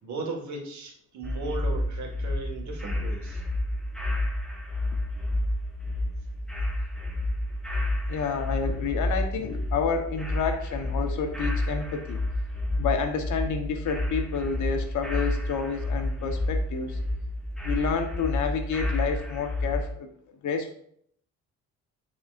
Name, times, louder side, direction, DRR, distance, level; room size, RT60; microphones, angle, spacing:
voice 1, 0.0-3.4, right 3 dB, 70° right, 1 dB, 1.9 m, -36 dB
sound 1, 1.2-19.9, left 1 dB, ahead, 1.4 m, -30 dB
voice 2, 8.1-12.2 12.8-17.0 17.6-20.1 20.4-20.7, left 5 dB, 75° left, 5 dB, 1.1 m, -29 dB
9.9 x 4.3 x 2.6 m, 0.65 s
cardioid pair, 90°, 30 cm